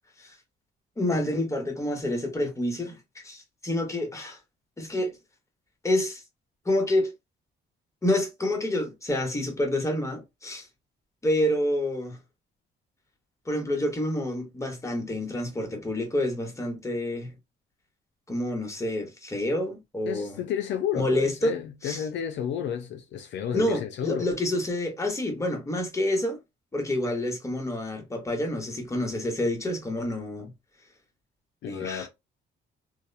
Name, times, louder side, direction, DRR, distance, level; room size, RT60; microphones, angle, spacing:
voice 1, 1.0-3.0 3.2-4.4 4.8-5.2 5.8-6.2 6.6-7.1 8.0-10.7 11.2-12.2 13.5-17.3 18.3-20.4 20.9-21.5 21.8-22.0 23.5-26.4 26.7-30.5 31.7-32.1, left 1 dB, 15° left, 0.9 m, -28 dB
voice 2, 20.1-24.3 31.6-32.1, left 9 dB, 65° left, 0.4 m, -31 dB
2.8 x 2.0 x 2.3 m
cardioid pair, 90°, 20 cm